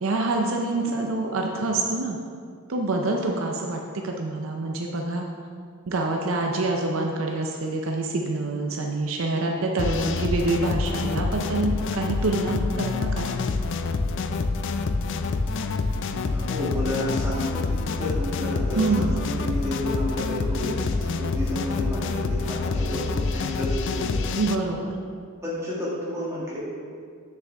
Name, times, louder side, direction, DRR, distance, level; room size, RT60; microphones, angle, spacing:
voice 1, 0.0-2.2 2.7-5.2 5.9-13.3 18.8-19.1 24.4-25.0, right 2 dB, 65° right, 1 dB, 0.6 m, -26 dB
sound 1, 9.8-24.6, left 3 dB, 60° left, 0.4 m, -27 dB
voice 2, 16.2-24.2 25.4-26.6, left 1 dB, 15° right, -8 dB, 2.0 m, -31 dB
7.2 x 6.8 x 3.4 m, 2.2 s
head